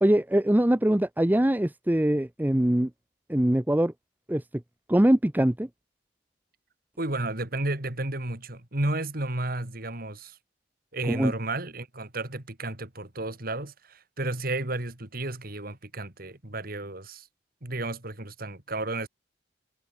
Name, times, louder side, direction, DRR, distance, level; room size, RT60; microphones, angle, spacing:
voice 1, 0.0-2.9 3.3-3.9 4.3-4.4 4.9-5.7 11.1-11.3, right 1 dB, 10° right, 0.6 m, -22 dB
voice 2, 7.0-10.4 10.9-17.3 17.6-19.1, right 2 dB, 55° right, 3.1 m, -32 dB
head